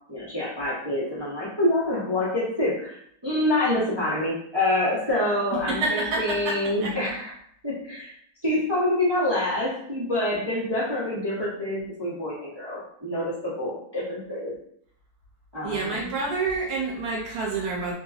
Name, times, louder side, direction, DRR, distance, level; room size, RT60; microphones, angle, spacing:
voice 1, 0.1-7.3 7.6-8.1 8.4-14.5 15.5-16.1, left 1 dB, 40° right, -9 dB, 0.3 m, -26 dB
voice 2, 5.5-6.6 6.8-6.9 15.6-17.9, right 3 dB, 70° right, -2 dB, 1.1 m, -28 dB
2.8 x 2.6 x 2.4 m, 0.67 s
omnidirectional pair, 1.8 m